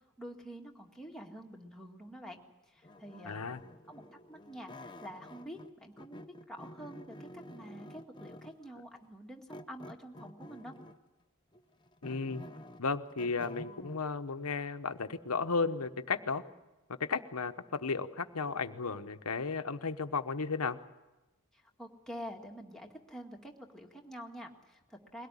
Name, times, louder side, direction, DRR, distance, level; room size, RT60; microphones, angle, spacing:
voice 1, 0.2-2.4 2.7-3.4 3.9-4.0 4.3-10.8 21.5-25.3, equal, ahead, 0 dB, 2.0 m, -47 dB
sound 1, 2.8-5.7 6.0-8.7 9.5-11.1 11.5-14.0, left 1 dB, 20° left, 0.9 m, -50 dB
voice 2, 3.2-3.6 12.0-12.5 12.8-16.4 16.9-20.8, left 4 dB, 80° left, 9 dB, 1.0 m, -34 dB
22.0 x 17.5 x 9.8 m, 1.0 s
head